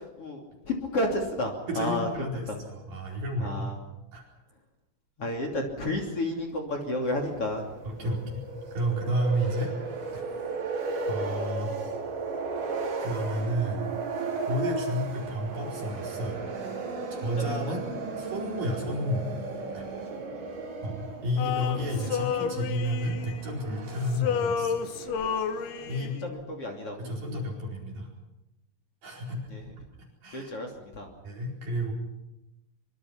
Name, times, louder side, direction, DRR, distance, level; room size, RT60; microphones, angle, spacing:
voice 1, 0.0-2.6 3.4-3.8 5.2-7.7 8.0-8.2 17.7-17.8 20.1-20.5 26.2-27.1 29.5-29.6 30.3-31.1, left 1 dB, 35° left, 2 dB, 3.0 m, -32 dB
voice 2, 1.7-3.7 4.1-4.2 7.8-8.4 8.7-9.7 10.1-10.2 11.1-11.7 13.0-13.9 14.5-16.4 17.1-17.9 18.2-19.3 19.7-19.8 20.8-24.8 25.9-26.2 27.0-28.1 29.0-29.4 30.2-30.5 31.2-31.9, equal, 45° right, -1 dB, 6.0 m, -31 dB
sound 1, 7.0-26.1, right 4 dB, 60° right, 6.5 m, -36 dB
Male singing, 21.4-23.8 24.1-26.3, left 7 dB, 70° left, 2.6 m, -31 dB
24.5 x 24.5 x 5.9 m, 0.94 s
omnidirectional pair, 5.8 m